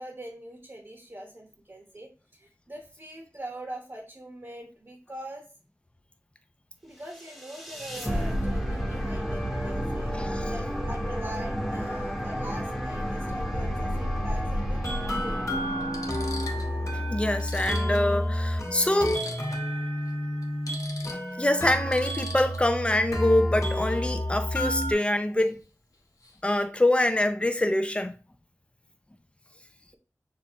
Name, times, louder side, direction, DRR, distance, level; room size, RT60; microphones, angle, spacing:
voice 1, 0.0-5.5 6.8-15.7, right 1 dB, 40° right, 1.0 m, -42 dB
sound 1, 7.1-17.3, equal, 5° left, 1.1 m, -31 dB
voice 2, 10.1-10.4 16.9-19.2 21.4-25.6 26.4-28.1, left 1 dB, 20° left, 0.5 m, -25 dB
sound 2, 13.0-13.1 14.5-14.6 15.3-15.4 15.8-16.7 17.1-17.2 17.4-19.7 20.0-20.1 20.4-22.8 25.4-25.6 25.9-26.4, left 3 dB, 80° left, 0.9 m, -43 dB
sound 3, 13.5-24.9, equal, 55° left, 2.0 m, -30 dB
6.6 x 2.6 x 2.9 m
wide cardioid pair, 70°, 6 cm